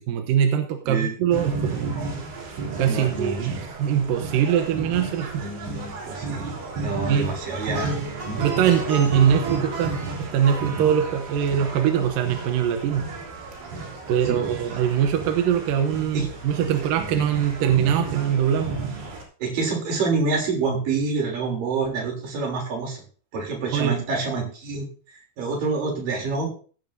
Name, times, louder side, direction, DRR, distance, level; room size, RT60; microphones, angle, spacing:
voice 1, 0.1-2.0 2.4-5.5 7.1-7.3 8.4-13.1 14.1-18.7 23.7-24.0, right 9 dB, 75° right, 6 dB, 2.2 m, -22 dB
sound 1, 1.3-19.2, right 3 dB, 90° right, 5.5 m, -33 dB
voice 2, 2.9-3.4 5.4-6.5 6.8-7.9 8.2-8.4 14.2-14.5 16.1-16.3 17.0-17.2 19.4-23.0 23.3-24.9 25.1-26.5, right 4 dB, 55° right, 1 dB, 4.8 m, -27 dB
Plucked string instrument, 7.2-12.5, right 2 dB, 35° right, 4.5 m, -35 dB
15.5 x 10.5 x 2.7 m, 0.40 s
omnidirectional pair, 5.0 m